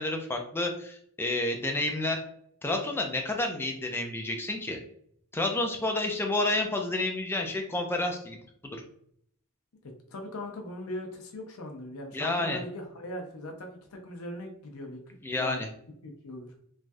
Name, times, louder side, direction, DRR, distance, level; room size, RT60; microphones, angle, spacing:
voice 1, 0.0-2.2 2.6-4.8 5.3-8.4 8.6-8.8 12.1-12.6 15.2-15.7, left 2 dB, 10° left, 3 dB, 0.4 m, -30 dB
voice 2, 9.8-15.0 15.4-15.6 16.0-16.5, left 1 dB, 85° left, 3 dB, 0.6 m, -40 dB
3.2 x 2.3 x 2.6 m, 0.67 s
head